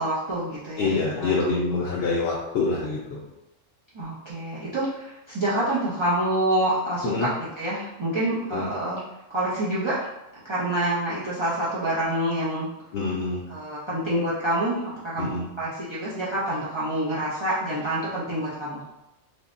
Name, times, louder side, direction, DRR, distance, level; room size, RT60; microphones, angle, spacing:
voice 1, 0.0-1.3 1.9-2.0 3.9-9.0 9.3-10.0 10.4-12.7 13.5-18.8, right 1 dB, 40° right, -9 dB, 0.4 m, -27 dB
voice 2, 0.8-3.2 7.0-7.3 8.5-8.7 12.9-13.4 15.2-15.4, left 4 dB, 65° left, -4 dB, 0.8 m, -26 dB
3.4 x 2.1 x 2.5 m, 0.92 s
omnidirectional pair, 1.3 m